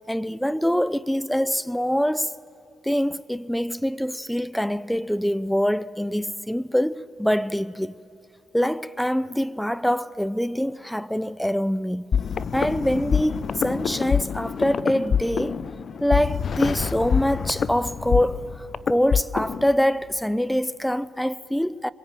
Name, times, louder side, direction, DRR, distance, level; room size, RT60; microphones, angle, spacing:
voice 1, 0.0-2.3 2.8-7.9 8.5-12.1 12.5-15.6 16.0-21.9, equal, ahead, 0.6 m, -24 dB
sound 1, 12.1-19.7, left 7 dB, 50° left, 0.6 m, -26 dB
25.0 x 22.0 x 9.1 m
cardioid pair, 90°, 0 cm